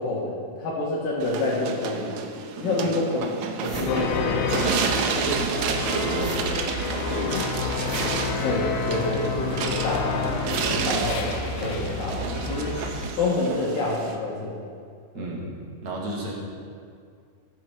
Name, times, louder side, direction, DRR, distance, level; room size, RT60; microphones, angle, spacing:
voice 1, 0.0-2.2 2.6-3.2 3.6-4.6 8.4-12.7 13.2-14.7 15.2-15.3, left 2 dB, 65° left, -4 dB, 3.1 m, -28 dB
sound 1, 1.2-14.2, right 6 dB, 85° right, 1.6 m, -31 dB
sound 2, 3.6-4.8 5.1-11.7, right 1 dB, 25° right, 2.0 m, -41 dB
sound 3, 3.9-13.1, left 4 dB, 90° left, 2.9 m, -29 dB
voice 2, 5.2-6.5 6.9-8.4 15.1-16.4, right 2 dB, 50° right, -2 dB, 2.9 m, -32 dB
14.0 x 9.4 x 6.0 m, 2.2 s
omnidirectional pair, 4.5 m